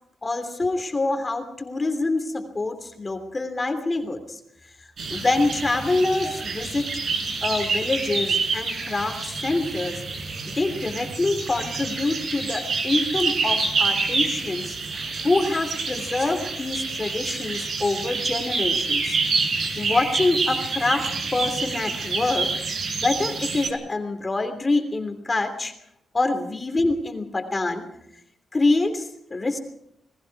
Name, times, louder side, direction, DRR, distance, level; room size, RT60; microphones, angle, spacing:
voice 1, 0.2-4.4 5.1-6.9 7.4-10.0 10.5-14.7 15.2-19.2 19.7-22.5 22.9-25.7 26.1-27.8 28.5-29.6, left 2 dB, 25° left, 6 dB, 3.1 m, -25 dB
sound 1, 5.0-23.7, right 4 dB, 55° right, 4.9 m, -27 dB
29.0 x 20.0 x 4.8 m, 0.77 s
cardioid pair, 105°, 0 cm